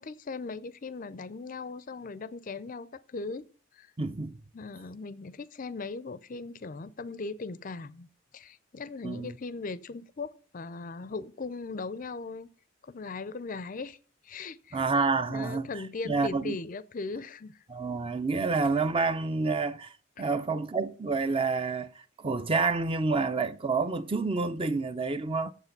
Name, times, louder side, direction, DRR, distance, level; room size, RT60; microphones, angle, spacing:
voice 1, 0.0-3.5 3.7-3.9 4.5-8.1 8.3-12.5 12.8-14.0 14.2-14.8 15.3-17.6 20.2-20.3, left 3 dB, 40° left, 0.4 m, -39 dB
voice 2, 4.0-4.4 9.0-9.4 14.7-15.7 16.1-16.6 17.7-19.9 20.2-25.5, right 4 dB, 25° right, 0.5 m, -28 dB
8.2 x 7.6 x 6.6 m
head